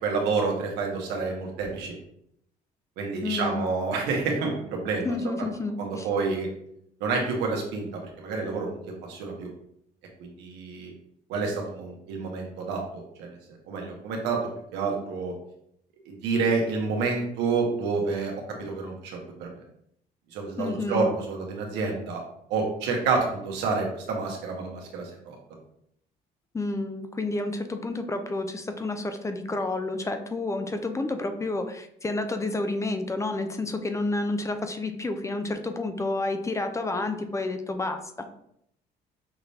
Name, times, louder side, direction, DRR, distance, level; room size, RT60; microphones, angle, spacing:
voice 1, 0.0-1.9 3.0-5.1 5.8-6.5 7.0-8.8 9.1-9.5 10.2-10.9 11.3-13.4 13.7-14.4 14.7-15.3 16.0-18.3 18.6-19.6 20.3-22.2 22.5-25.4, right 4 dB, 85° right, 0 dB, 1.2 m, -28 dB
voice 2, 3.2-3.7 5.0-6.1 20.6-21.1 26.5-38.3, left 2 dB, 15° left, 7 dB, 0.5 m, -30 dB
5.9 x 2.7 x 3.3 m, 0.73 s
cardioid pair, 110°, 17 cm